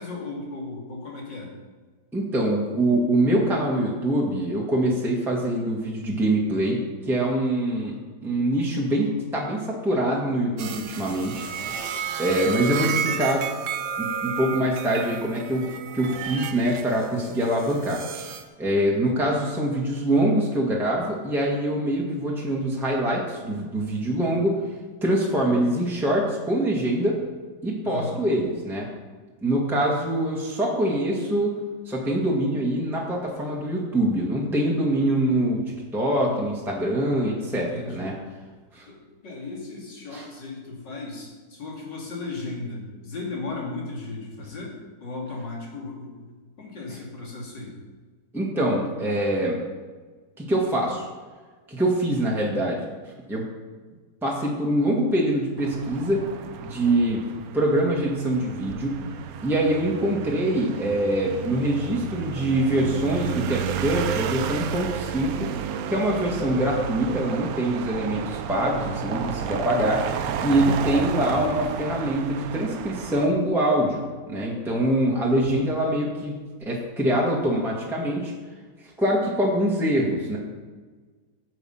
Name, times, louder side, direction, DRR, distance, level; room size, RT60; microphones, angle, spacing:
voice 1, 0.0-1.5 12.6-13.0 27.8-28.2 37.5-38.1 38.9-46.3 46.6-47.8 75.3-75.7, left 3 dB, 80° left, -2 dB, 3.1 m, -36 dB
voice 2, 2.1-7.9 8.2-11.4 12.2-13.5 14.0-15.7 15.9-18.3 18.6-24.6 25.0-27.2 27.6-28.9 29.4-31.5 31.9-38.1 38.7-38.8 40.1-40.2 48.3-49.6 50.4-51.1 51.7-52.8 53.3-53.4 54.2-56.2 56.6-57.2 57.5-59.0 59.4-65.5 65.9-78.3 79.0-80.4, right 1 dB, ahead, -3 dB, 1.6 m, -24 dB
sound 1, 10.6-18.4, right 7 dB, 80° right, 1.6 m, -32 dB
sound 2, 55.6-73.3, right 8 dB, 65° right, 1.0 m, -32 dB
12.5 x 7.8 x 5.7 m, 1.4 s
omnidirectional pair, 1.9 m